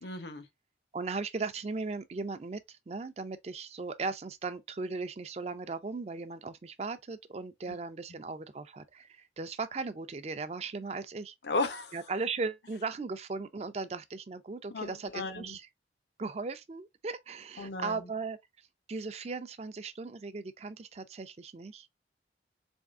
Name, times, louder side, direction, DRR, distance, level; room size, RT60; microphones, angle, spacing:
voice 1, 0.0-0.5 7.7-7.8 11.4-12.0 14.7-15.6 17.6-18.1, left 3 dB, 70° left, 0.7 m, -35 dB
voice 2, 0.9-11.3 11.9-15.6 16.2-18.4 18.9-21.9, right 4 dB, 35° right, 0.4 m, -37 dB
4.0 x 3.5 x 2.4 m
head